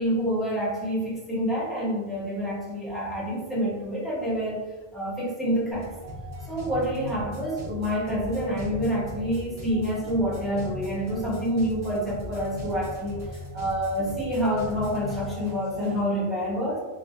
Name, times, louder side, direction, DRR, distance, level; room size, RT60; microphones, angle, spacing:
voice 1, 0.0-4.6 4.9-5.9 6.5-16.8, equal, ahead, -8 dB, 0.7 m, -27 dB
sound 1, 5.7-16.0, left 1 dB, 35° right, 1.0 m, -38 dB
2.7 x 2.6 x 2.4 m, 1.2 s
omnidirectional pair, 1.2 m